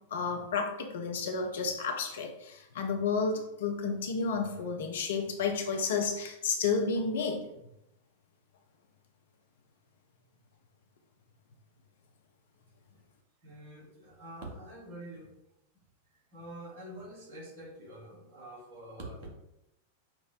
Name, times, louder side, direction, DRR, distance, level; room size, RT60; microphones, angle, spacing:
voice 1, 0.1-7.4, left 5 dB, 60° left, 3 dB, 0.6 m, -31 dB
voice 2, 13.4-15.3 16.3-19.3, right 1 dB, 45° right, -2 dB, 1.2 m, -46 dB
5.8 x 2.0 x 2.6 m, 0.86 s
figure-of-eight pair, 90°, 0 cm